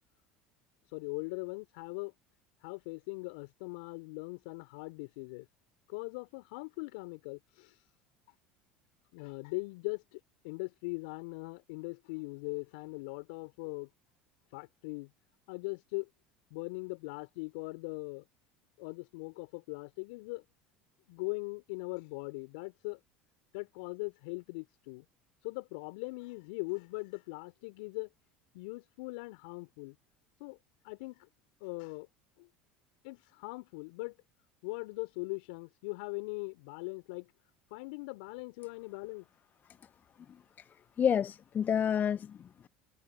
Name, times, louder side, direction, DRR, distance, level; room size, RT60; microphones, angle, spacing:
voice 1, 0.9-2.1 2.6-5.5 5.9-7.7 9.1-13.9 14.5-15.1 15.5-16.1 16.5-18.2 18.8-20.4 21.1-23.0 23.5-25.0 25.4-28.1 28.5-30.0 30.4-30.6 30.8-31.3 31.6-32.1 32.4-32.5 33.0-34.2 34.6-37.3 37.7-39.3, left 28 dB, 65° left, 3.7 m, -40 dB
voice 2, 40.3-42.7, left 8 dB, 35° left, 0.6 m, -31 dB
hypercardioid pair, 70°, 5 cm